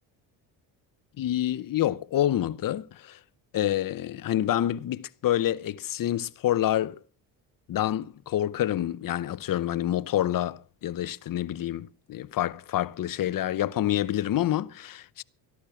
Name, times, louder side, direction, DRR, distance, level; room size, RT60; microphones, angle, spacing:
voice 1, 1.2-3.2 3.5-7.0 7.7-15.2, left 12 dB, 45° left, 0.9 m, -27 dB
14.0 x 12.0 x 5.7 m
supercardioid pair, 90°, 45 cm